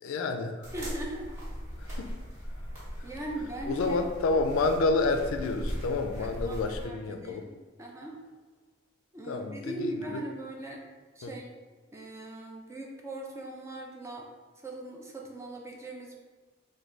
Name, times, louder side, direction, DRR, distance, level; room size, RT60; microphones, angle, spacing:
voice 1, 0.0-0.7 1.8-2.1 3.7-7.4 9.3-10.2 11.2-11.3, left 3 dB, 80° left, 6 dB, 0.3 m, -29 dB
sound 1, 0.6-6.9, equal, 35° right, 1.4 m, -39 dB
voice 2, 0.7-1.3 3.0-4.1 6.2-8.2 9.1-10.8 11.2-11.5 11.9-14.3 14.6-16.2, right 1 dB, 15° right, -1 dB, 0.4 m, -39 dB
3.2 x 2.2 x 3.7 m, 1.4 s
head